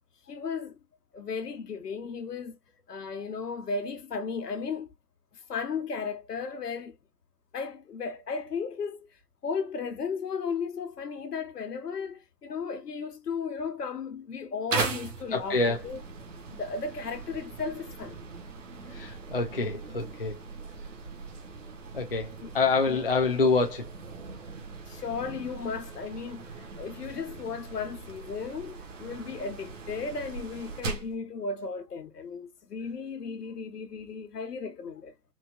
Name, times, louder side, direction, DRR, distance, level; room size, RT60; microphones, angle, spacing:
voice 1, 0.3-0.7 1.1-2.6 2.9-4.9 5.5-6.9 7.5-9.0 9.4-16.0 16.5-18.2 22.4-22.5 22.9-23.0 24.9-35.1, left 5 dB, 75° left, 1.2 m, -35 dB
sound 1, 14.7-31.2, right 4 dB, 50° right, 1.2 m, -39 dB
voice 2, 15.3-15.8 18.9-20.4 21.9-23.9, left 3 dB, 40° left, 0.4 m, -26 dB
4.4 x 2.3 x 2.5 m
hypercardioid pair, 160°, 48 cm